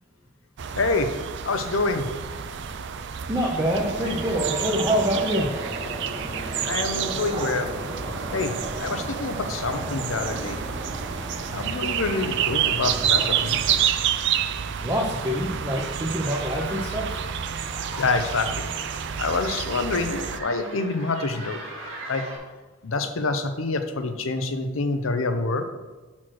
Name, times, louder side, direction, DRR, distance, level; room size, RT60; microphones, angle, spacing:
sound 1, 0.6-20.4, right 9 dB, 60° right, 0.4 m, -29 dB
voice 1, 0.8-1.1 1.4-2.1 6.6-7.7 8.3-10.6 11.5-13.6 18.0-18.7 19.2-21.6 22.1-22.2 22.8-25.6, left 3 dB, 85° left, 8 dB, 0.7 m, -26 dB
voice 2, 3.3-5.5 14.8-17.2, equal, 15° right, -1 dB, 0.7 m, -25 dB
sound 2, 3.7-13.8, right 1 dB, 40° right, 2.0 m, -34 dB
sound 3, 16.2-22.4, right 2 dB, 85° right, 1.9 m, -40 dB
6.0 x 4.4 x 6.2 m, 1.2 s
head